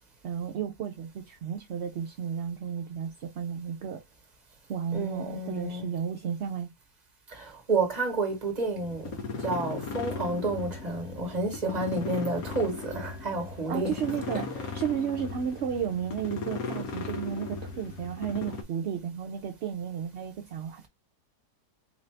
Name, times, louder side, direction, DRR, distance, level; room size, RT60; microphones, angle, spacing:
voice 1, 0.2-4.0 4.7-6.7 13.7-20.9, right 8 dB, 60° right, 0.7 m, -33 dB
voice 2, 4.9-5.9 7.3-9.1 9.4-14.0 14.5-14.7, right 2 dB, 30° right, 1.3 m, -30 dB
sound 1, 8.8-18.6, left 4 dB, 70° left, 1.3 m, -37 dB
4.1 x 2.6 x 3.2 m
omnidirectional pair, 1.6 m